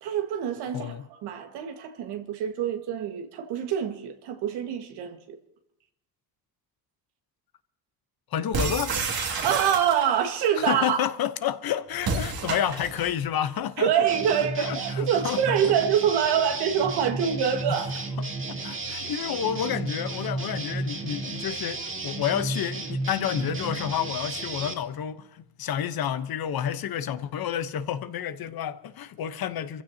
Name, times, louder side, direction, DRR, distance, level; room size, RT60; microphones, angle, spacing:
voice 1, 0.0-1.0 1.2-5.4 9.4-11.0 13.8-18.1, right 8 dB, 85° right, 1.8 m, -25 dB
voice 2, 0.7-1.1 8.3-9.0 10.6-13.9 14.3-15.6 17.7-17.8 18.5-29.8, left 9 dB, 60° left, 1.1 m, -30 dB
sound 1, 8.5-10.2 12.0-13.1, right 4 dB, 65° right, 2.6 m, -29 dB
sound 2, 14.1-24.7, right 2 dB, 30° right, 2.3 m, -33 dB
27.0 x 15.5 x 2.9 m
supercardioid pair, 65°, 40 cm